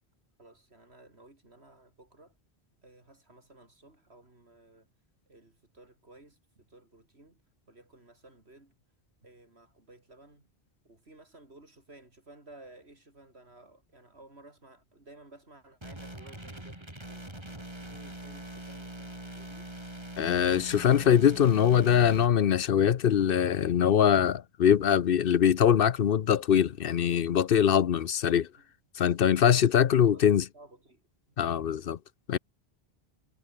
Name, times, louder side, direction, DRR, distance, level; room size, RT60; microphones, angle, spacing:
voice 1, 0.4-2.3 2.8-4.9 5.3-7.4 7.7-8.7 9.2-10.5 10.9-19.7 28.6-28.7 29.4-29.7 30.1-31.7, right 2 dB, 85° right, 5.2 m, -55 dB
this cable has a short in it, 15.8-22.3, right 1 dB, 25° right, 4.6 m, -43 dB
voice 2, 20.2-28.5 29.0-30.4 31.4-32.0 32.3-32.4, left 9 dB, 65° left, 0.9 m, -23 dB
omnidirectional pair, 1.1 m